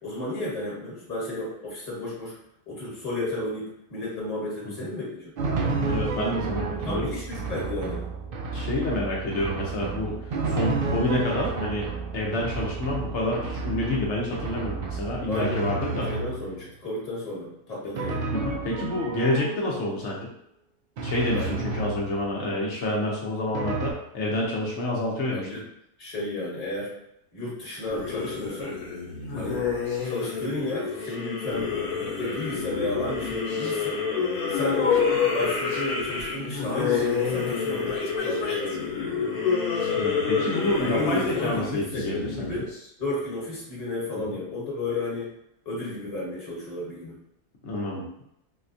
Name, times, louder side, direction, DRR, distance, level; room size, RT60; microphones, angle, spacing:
voice 1, 0.0-2.4 2.7-5.3 6.8-8.1 15.3-15.7 16.0-18.3 21.3-21.7 25.3-25.6 26.0-27.0 27.3-28.8 29.3-29.7 30.0-31.8 32.1-34.1 34.5-35.1 35.3-39.3 40.8-42.7 43.0-45.3 45.6-47.2, left 2 dB, 25° left, -6 dB, 1.3 m, -32 dB
Drum, 5.4-16.7 17.9-19.9 21.0-22.5 23.5-23.9, right 4 dB, 70° right, 0.5 m, -31 dB
voice 2, 5.9-7.1 8.5-10.2 10.4-16.1 18.3-20.3 21.0-25.5 29.3-29.6 40.0-42.6 44.1-44.3 47.6-48.0, left 1 dB, 60° left, -3 dB, 1.0 m, -28 dB
sound 1, 27.9-42.8, left 5 dB, 85° left, 1.2 m, -28 dB
4.1 x 2.2 x 2.6 m, 0.79 s
omnidirectional pair, 1.5 m